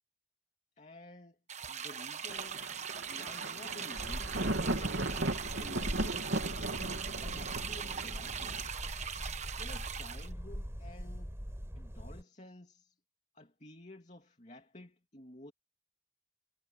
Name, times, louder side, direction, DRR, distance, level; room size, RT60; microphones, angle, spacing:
voice 1, 0.8-1.4 1.7-2.6 3.1-5.1 5.6-6.5 7.2-8.6 9.6-11.3 11.7-13.0 13.3-15.5, left 1 dB, 35° left, 2.7 m, -52 dB
sound 1, 1.5-10.3, right 7 dB, 35° right, 1.3 m, -41 dB
Thunder, 2.3-8.7, right 2 dB, 65° right, 1.9 m, -37 dB
sound 2, 3.9-12.2, equal, 15° right, 4.6 m, -42 dB
head